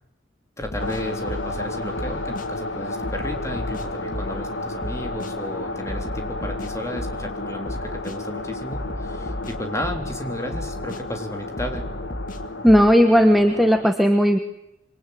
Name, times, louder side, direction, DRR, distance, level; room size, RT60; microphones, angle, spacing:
sound 1, 0.6-1.6 2.0-2.5 3.0-4.5 4.8-5.3 5.9-7.3 7.7-8.2 8.7-10.2 10.5-11.0 11.6-12.9, left 1 dB, 45° left, 2.2 m, -34 dB
voice 1, 0.6-11.9, equal, 15° left, 4 dB, 3.4 m, -33 dB
sound 2, 0.8-13.8, left 2 dB, 85° left, 2.1 m, -32 dB
voice 2, 12.6-14.4, equal, ahead, 5 dB, 1.3 m, -15 dB
26.0 x 24.0 x 9.4 m, 0.87 s
head